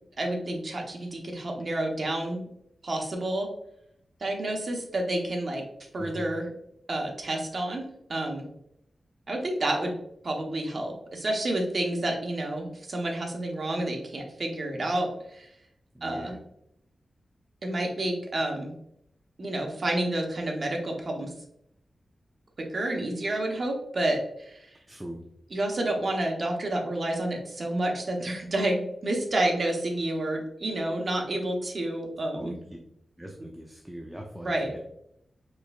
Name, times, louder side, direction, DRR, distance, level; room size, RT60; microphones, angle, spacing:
voice 1, 0.2-2.4 2.8-3.5 4.2-5.6 5.9-6.5 6.9-7.8 8.1-8.4 9.3-9.9 10.2-15.5 16.0-16.4 17.6-18.8 19.4-21.3 22.6-24.7 25.5-32.5 34.4-34.7, right 1 dB, 45° right, 1 dB, 0.8 m, -29 dB
voice 2, 6.0-6.3 15.9-16.4 24.9-25.2 32.4-32.8 33.2-34.8, equal, 10° right, 0 dB, 0.4 m, -41 dB
4.5 x 3.3 x 2.3 m, 0.74 s
wide cardioid pair, 120°, 0 cm